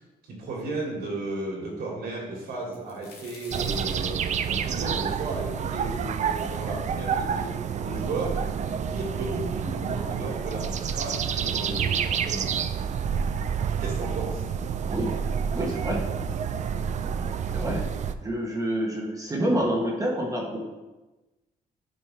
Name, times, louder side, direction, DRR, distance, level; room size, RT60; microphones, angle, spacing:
voice 1, 0.3-4.1 4.4-7.5 7.8-8.4 8.6-12.5 13.8-14.4, right 2 dB, 70° right, -2 dB, 2.6 m, -34 dB
sound 1, 2.5-6.3 6.8-6.9 7.7-7.8 8.0-8.7 9.6-9.7 10.1-10.3, left 3 dB, 85° left, 1.8 m, -49 dB
sound 2, 3.5-18.1, right 7 dB, 45° right, 0.4 m, -29 dB
voice 2, 15.5-16.1 17.5-17.8 18.2-20.6, equal, 20° right, -1 dB, 1.3 m, -27 dB
10.5 x 5.1 x 3.4 m, 1.1 s
cardioid pair, 125°, 16 cm